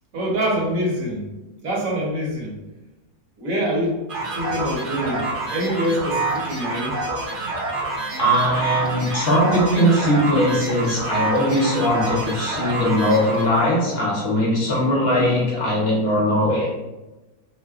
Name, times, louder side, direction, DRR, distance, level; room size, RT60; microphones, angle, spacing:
voice 1, 0.1-1.2 1.6-2.5 3.4-4.0 4.3-7.0, equal, 70° right, -4 dB, 1.3 m, -25 dB
sound 1, 4.1-13.8, right 2 dB, 45° right, 0.8 m, -27 dB
voice 2, 8.2-16.7, equal, 55° left, -4 dB, 0.8 m, -20 dB
2.8 x 2.1 x 3.4 m, 1.1 s
omnidirectional pair, 1.5 m